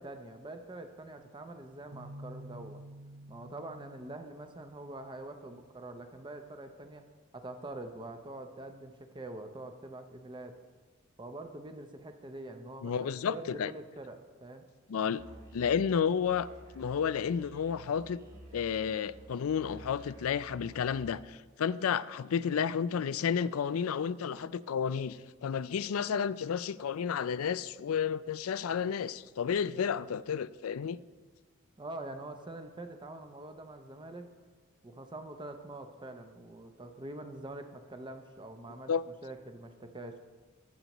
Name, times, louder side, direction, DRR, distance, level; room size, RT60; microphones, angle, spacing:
voice 1, 0.0-2.8 3.3-7.0 7.3-10.5 11.2-14.6 31.8-34.3 34.8-38.9 39.2-40.2, right 2 dB, 20° right, 0.6 m, -45 dB
sound 1, 1.9-5.6, right 1 dB, 85° right, 1.1 m, -50 dB
voice 2, 12.8-13.7 14.9-15.2 15.5-16.5 16.7-18.2 18.5-31.0 38.9-39.0, left 7 dB, 90° left, 0.4 m, -31 dB
Musical instrument, 15.2-21.0, right 1 dB, 45° right, 2.6 m, -52 dB
19.0 x 7.8 x 3.0 m
head